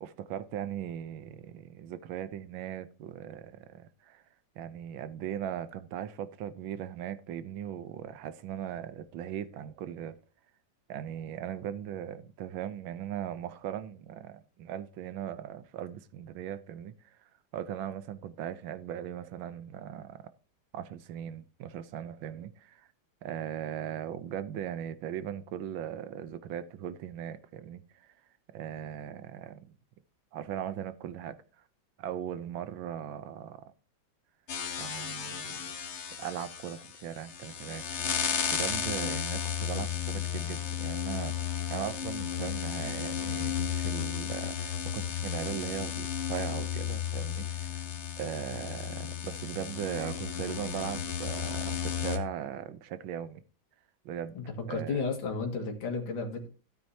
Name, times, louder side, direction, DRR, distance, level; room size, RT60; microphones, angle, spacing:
voice 1, 0.0-4.2 4.6-10.1 10.9-17.2 17.5-20.2 20.7-22.9 23.2-27.8 28.5-29.7 30.3-31.3 32.0-33.6 34.8-35.7 36.2-37.8 38.5-47.8 48.2-53.4 54.0-54.4 54.7-55.0, right 10 dB, 80° right, 1.5 m, -39 dB
sound 1, 34.5-52.2, left 8 dB, 45° left, 1.0 m, -34 dB
voice 2, 54.7-56.5, left 4 dB, 75° left, 2.5 m, -33 dB
13.0 x 9.0 x 2.8 m
omnidirectional pair, 2.2 m